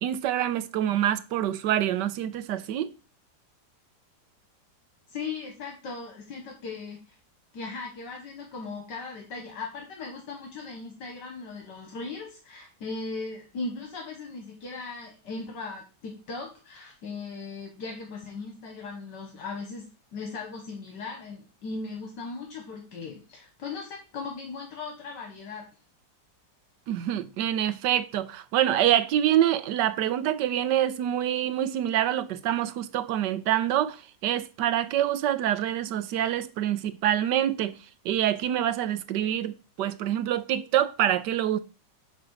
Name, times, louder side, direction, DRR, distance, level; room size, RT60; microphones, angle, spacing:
voice 1, 0.0-2.9 26.9-37.8 38.0-41.6, right 11 dB, 75° right, 1.3 m, -26 dB
voice 2, 5.1-7.2 7.5-25.7, left 4 dB, 75° left, 1.9 m, -38 dB
9.4 x 3.2 x 6.3 m
omnidirectional pair, 1.9 m